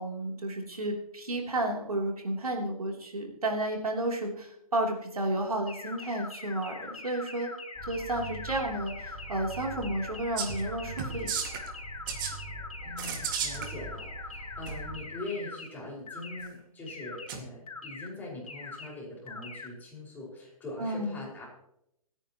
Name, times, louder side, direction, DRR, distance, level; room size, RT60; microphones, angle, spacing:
voice 1, 0.0-7.5 7.9-11.3 20.8-21.2, right 1 dB, 80° right, 1 dB, 3.4 m, -32 dB
sound 1, 5.7-15.7 16.1-16.5 16.9-17.3 17.7-18.1 18.5-18.9 19.3-19.7, left 4 dB, 75° left, 3.3 m, -42 dB
sound 2, 7.7-15.0, right 3 dB, 15° right, 2.9 m, -44 dB
sound 3, 10.4-10.7 11.0-11.7 12.1-12.3 13.0-13.7 14.7-14.8 17.3-17.4, right 7 dB, 35° right, 2.1 m, -33 dB
voice 2, 12.8-21.4, left 2 dB, 10° left, -4 dB, 5.5 m, -42 dB
27.0 x 9.9 x 3.1 m, 0.78 s
figure-of-eight pair, 135°, 19 cm